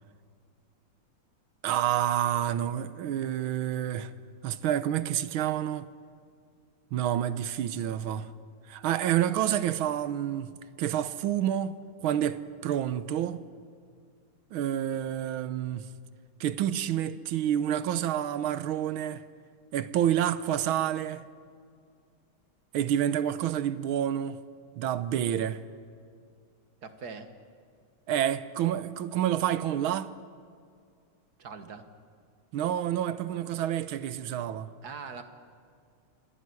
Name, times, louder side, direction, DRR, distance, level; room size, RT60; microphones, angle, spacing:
voice 1, 1.6-4.1 4.4-5.9 6.9-8.3 8.7-10.5 10.8-13.4 14.5-15.9 16.4-19.2 19.7-21.2 22.7-24.4 24.8-25.6 28.1-30.1 32.5-34.7, right 11 dB, 80° right, 1.7 m, -28 dB
voice 2, 26.8-27.3 31.4-31.9 34.8-35.2, right 5 dB, 50° right, 2.0 m, -41 dB
26.5 x 18.5 x 9.7 m
omnidirectional pair, 2.3 m